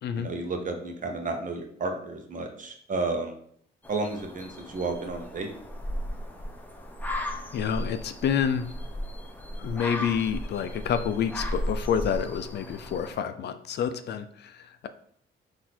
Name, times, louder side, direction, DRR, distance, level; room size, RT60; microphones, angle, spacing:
voice 1, 0.1-3.4 3.9-5.5, right 3 dB, 40° right, 4 dB, 0.8 m, -32 dB
sound 1, 3.8-13.2, equal, 10° left, 0.7 m, -36 dB
voice 2, 7.5-8.7 9.6-14.9, left 8 dB, 60° left, 10 dB, 0.4 m, -28 dB
4.1 x 2.6 x 4.3 m, 0.64 s
cardioid pair, 90°, 20 cm